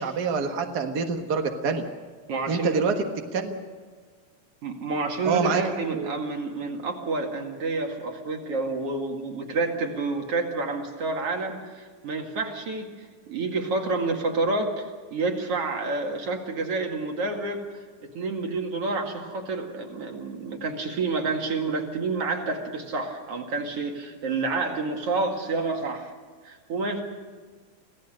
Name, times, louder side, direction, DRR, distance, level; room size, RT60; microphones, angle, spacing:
voice 1, 0.0-1.9 2.5-2.9 3.3-3.6 5.2-5.6 5.9-6.1, right 5 dB, 70° right, 4 dB, 0.9 m, -26 dB
voice 2, 2.3-2.9 4.6-12.9 13.3-17.6 18.1-26.1 26.4-27.0, right 3 dB, 45° right, 2 dB, 2.9 m, -29 dB
27.0 x 16.5 x 6.6 m, 1.5 s
omnidirectional pair, 4.2 m